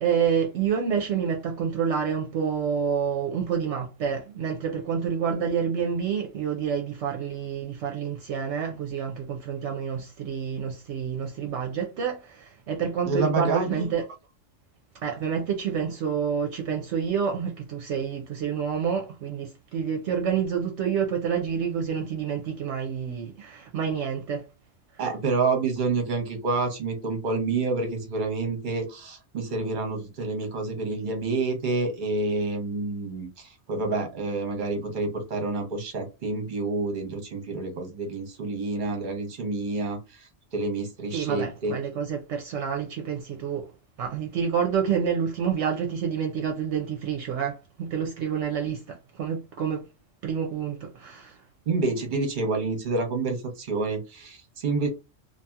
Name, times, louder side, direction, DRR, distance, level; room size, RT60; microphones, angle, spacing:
voice 1, 0.0-14.1 15.0-24.4 41.1-43.7 44.0-49.8 50.2-51.4, right 7 dB, 70° right, 0.8 m, -28 dB
voice 2, 13.1-13.9 25.0-41.7 51.7-54.9, right 3 dB, 45° right, 0.9 m, -28 dB
2.7 x 2.6 x 2.3 m
omnidirectional pair, 1.3 m